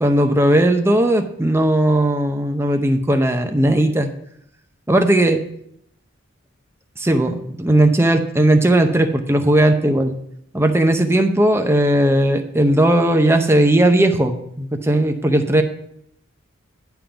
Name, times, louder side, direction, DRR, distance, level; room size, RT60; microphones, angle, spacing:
voice 1, 0.0-4.1 4.9-5.4 7.0-10.1 10.5-15.6, right 1 dB, 10° right, 6 dB, 0.6 m, -17 dB
10.0 x 3.8 x 6.8 m, 0.73 s
head